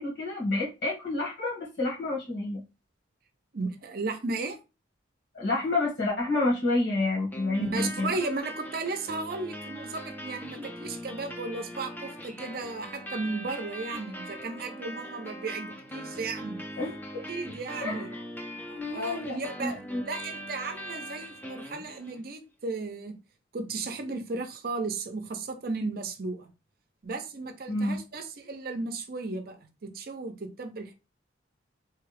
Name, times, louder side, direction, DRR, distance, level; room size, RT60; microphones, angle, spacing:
voice 1, 0.0-2.6 5.3-8.1 10.6-10.7 16.8-17.3 17.8-18.2 18.7-20.0 27.7-28.0, left 2 dB, 65° left, 1.6 m, -29 dB
voice 2, 3.5-4.6 7.6-16.6 17.3-18.1 18.7-19.8 20.0-23.2 23.5-26.5 27.0-30.9, right 3 dB, 50° right, 0.6 m, -35 dB
sound 1, 7.3-22.3, equal, 10° left, 0.5 m, -41 dB
3.3 x 2.3 x 3.2 m
head